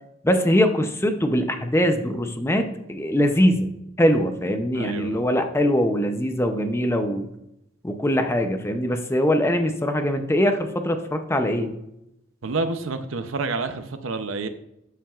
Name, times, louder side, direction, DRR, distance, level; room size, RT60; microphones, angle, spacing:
voice 1, 0.2-3.7 4.0-7.3 7.8-11.7, equal, 15° left, 6 dB, 0.6 m, -22 dB
voice 2, 4.7-5.2 12.4-14.5, right 3 dB, 75° right, 10 dB, 0.7 m, -28 dB
12.5 x 5.7 x 2.4 m, 0.83 s
head